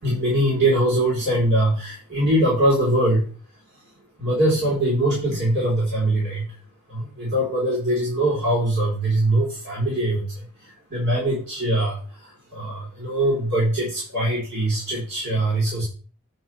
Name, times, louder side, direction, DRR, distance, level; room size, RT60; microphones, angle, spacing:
voice 1, 0.0-3.3 4.2-6.5 6.9-15.8, right 1 dB, 55° right, -5 dB, 3.9 m, -22 dB
9.2 x 4.7 x 5.9 m, 0.37 s
head